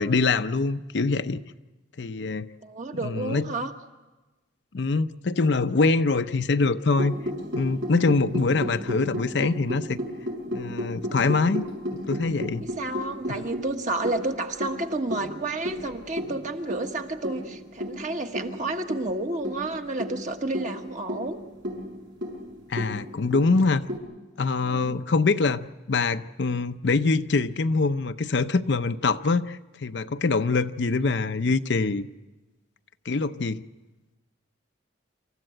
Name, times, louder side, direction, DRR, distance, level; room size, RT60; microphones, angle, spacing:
voice 1, 0.0-1.4 2.0-2.5 3.0-3.5 4.7-7.2 7.5-10.0 10.5-11.7 12.1-12.7 13.3-13.4 22.7-23.8 24.4-32.1 33.1-33.6, left 3 dB, 60° left, 11 dB, 0.6 m, -24 dB
voice 2, 2.6-3.7 12.8-21.4 24.6-25.0, right 2 dB, 40° right, 5 dB, 1.3 m, -31 dB
sound 1, 7.0-24.0, equal, 75° right, 6.7 m, -34 dB
27.5 x 14.5 x 7.8 m, 1.2 s
head